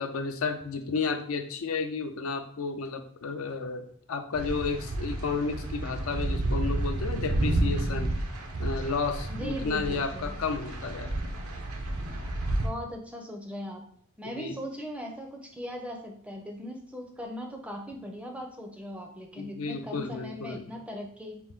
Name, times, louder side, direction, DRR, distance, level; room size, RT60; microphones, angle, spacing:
voice 1, 0.0-8.1 8.6-11.2 14.4-14.6 19.4-20.7, left 4 dB, 70° left, 6 dB, 0.5 m, -32 dB
sound 1, 4.3-12.7, right 1 dB, 90° right, 0.7 m, -31 dB
voice 2, 9.3-10.4 12.6-13.8 14.2-21.4, equal, 5° right, 2 dB, 0.5 m, -39 dB
4.4 x 2.5 x 3.5 m, 0.63 s
head